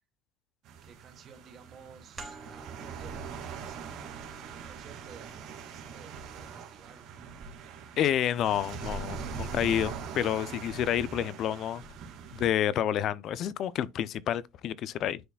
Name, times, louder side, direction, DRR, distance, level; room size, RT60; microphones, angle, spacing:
sound 1, 0.6-12.5, right 6 dB, 60° right, 2.1 m, -42 dB
voice 1, 0.8-7.1, right 6 dB, 35° right, 2.0 m, -54 dB
sound 2, 2.2-7.4, right 3 dB, 20° right, 2.2 m, -52 dB
voice 2, 8.0-11.8 12.3-15.2, left 10 dB, 45° left, 0.5 m, -29 dB
10.0 x 4.7 x 2.3 m
cardioid pair, 140°, 0 cm